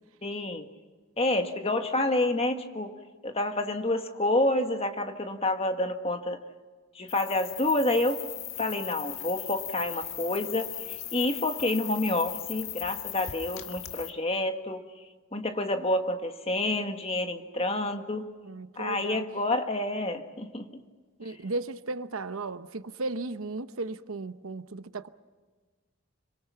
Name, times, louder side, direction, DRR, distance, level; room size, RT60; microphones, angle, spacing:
voice 1, 0.2-0.7 1.2-2.9 3.2-6.4 6.9-8.2 8.6-14.8 15.3-18.3 18.8-20.8, left 1 dB, 30° left, 1.6 m, -28 dB
sound 1, 7.1-14.1, left 12 dB, 80° left, 1.5 m, -38 dB
voice 2, 18.4-19.3 21.2-25.1, right 3 dB, 80° right, 0.9 m, -35 dB
26.5 x 24.5 x 5.8 m
head